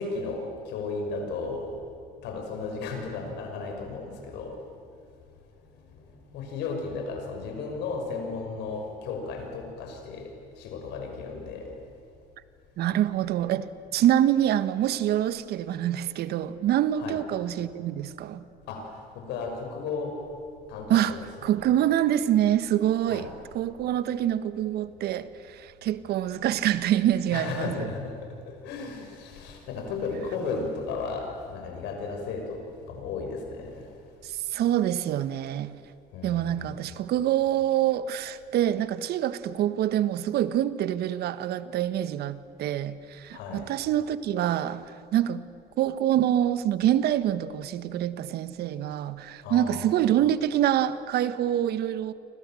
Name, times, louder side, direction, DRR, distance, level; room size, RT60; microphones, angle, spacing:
voice 1, 0.0-1.7 2.2-4.6 5.9-10.3 10.6-11.7 17.0-17.2 18.7-20.2 20.7-21.2 23.1-23.3 27.3-33.9 36.1-36.8 43.3-43.7 49.4-49.9, left 4 dB, 75° left, 6.3 m, -34 dB
voice 2, 12.8-18.4 20.9-21.2 21.4-23.3 23.5-27.7 34.2-35.8 36.2-45.4 45.8-52.1, right 11 dB, 65° right, 1.3 m, -26 dB
29.0 x 25.0 x 7.7 m
supercardioid pair, 90°, 18 cm